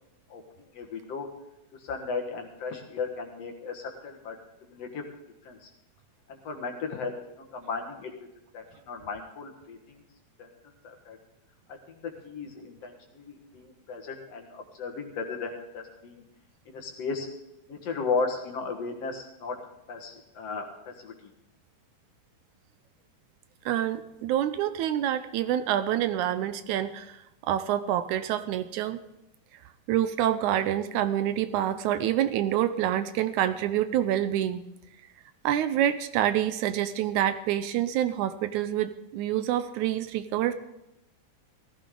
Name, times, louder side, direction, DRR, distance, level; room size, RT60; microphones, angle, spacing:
voice 1, 0.3-1.3 1.8-4.4 4.6-5.0 5.4-5.7 6.3-8.1 8.5-10.0 10.4-10.5 10.8-11.2 11.7-16.2 16.7-17.3 17.7-19.6 19.9-21.3, left 4 dB, 55° left, 3 dB, 2.4 m, -35 dB
voice 2, 23.7-29.0 29.9-34.6 35.4-40.5, right 11 dB, 80° right, 12 dB, 2.0 m, -27 dB
17.0 x 15.0 x 3.8 m, 0.88 s
omnidirectional pair, 3.6 m